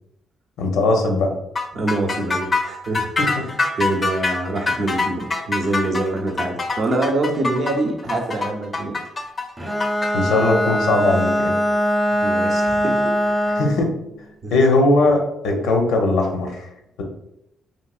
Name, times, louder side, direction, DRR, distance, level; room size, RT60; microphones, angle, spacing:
voice 1, 0.6-1.3 3.2-3.5 10.1-11.5 13.5-13.9 14.5-16.7, left 2 dB, 85° left, 2 dB, 0.6 m, -19 dB
sound 1, 1.6-10.1, left 3 dB, 30° left, 0.4 m, -24 dB
voice 2, 1.7-3.1 3.4-9.0 12.2-13.6 14.4-14.5, right 2 dB, 55° right, 2 dB, 0.6 m, -25 dB
Bowed string instrument, 9.6-13.8, equal, 15° right, 0.6 m, -21 dB
3.1 x 2.7 x 2.4 m, 0.80 s
cardioid pair, 90°, 0 cm